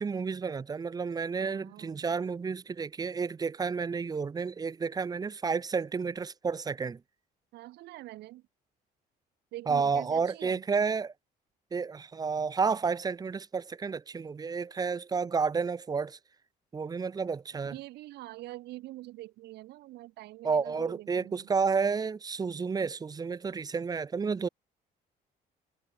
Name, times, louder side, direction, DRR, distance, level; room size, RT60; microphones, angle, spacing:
voice 1, 0.0-7.0 9.7-11.1 11.7-16.2 16.7-17.7 20.4-24.5, right 5 dB, 20° right, 0.7 m, -31 dB
voice 2, 1.4-2.0 7.5-8.5 9.5-10.6 17.6-21.5, right 17 dB, 80° right, 2.8 m, -45 dB
cardioid pair, 110°, 17 cm